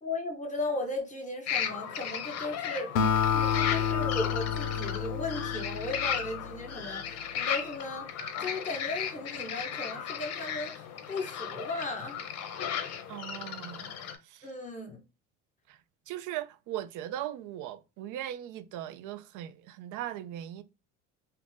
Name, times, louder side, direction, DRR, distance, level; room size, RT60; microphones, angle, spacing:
voice 1, 0.0-2.9 3.3-12.2 14.4-15.0, left 2 dB, 20° left, 1.2 m, -36 dB
sound 1, 1.5-14.2, left 8 dB, 45° left, 0.7 m, -36 dB
Acoustic guitar, 3.0-6.5, left 7 dB, 80° left, 0.6 m, -29 dB
voice 2, 13.1-13.9 14.2-14.5 15.7-15.8 16.1-20.6, right 12 dB, 55° right, 0.5 m, -39 dB
2.9 x 2.4 x 3.4 m
hypercardioid pair, 85°, 37 cm